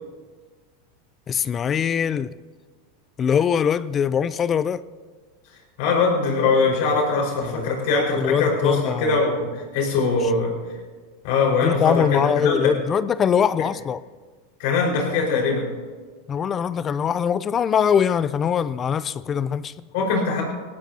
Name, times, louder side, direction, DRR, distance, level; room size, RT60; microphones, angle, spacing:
voice 1, 1.3-2.3 3.2-4.8 7.4-7.7 8.2-9.2 11.6-14.0 16.3-19.7, left 7 dB, 30° left, 0.5 m, -22 dB
voice 2, 5.8-10.6 11.2-12.7 14.6-15.7 19.9-20.4, left 4 dB, 65° left, 5.2 m, -22 dB
22.0 x 17.0 x 2.9 m
hypercardioid pair, 105°, 0 cm